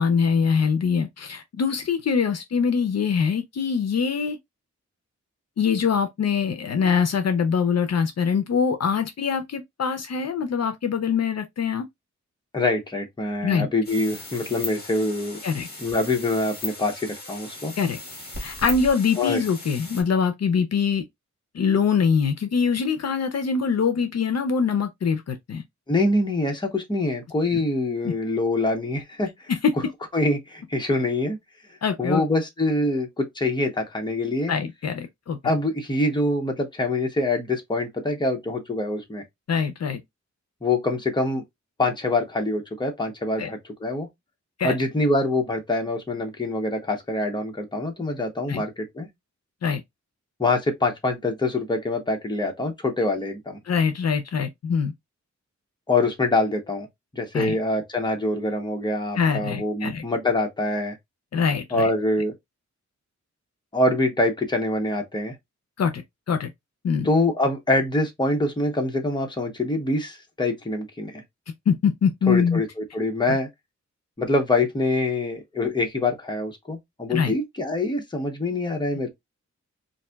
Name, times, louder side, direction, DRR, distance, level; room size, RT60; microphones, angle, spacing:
voice 1, 0.0-4.4 5.6-11.9 13.4-13.7 15.4-15.7 17.8-18.0 18.4-21.0 21.5-25.6 28.0-28.1 29.5-29.7 31.8-32.2 34.5-35.4 39.5-40.0 43.4-43.5 44.6-44.7 48.5-48.6 49.6-49.8 53.7-54.9 57.3-57.6 59.2-60.0 61.3-61.9 65.8-66.5 66.8-67.1 71.7-72.6 73.3-73.4 77.1-77.3, left 6 dB, 60° left, 0.5 m, -23 dB
voice 2, 12.5-15.4 15.8-17.7 19.2-19.4 25.9-29.5 30.1-31.4 32.0-34.5 35.4-39.2 40.6-41.4 41.8-44.1 44.6-49.1 50.4-53.6 55.9-56.9 57.1-61.0 61.7-62.3 63.7-65.3 67.0-71.2 72.3-73.5 74.2-79.1, left 2 dB, 15° left, 0.8 m, -25 dB
sound 1, 13.8-20.0, left 2 dB, 35° left, 1.5 m, -37 dB
4.0 x 2.5 x 2.2 m
wide cardioid pair, 160°, 29 cm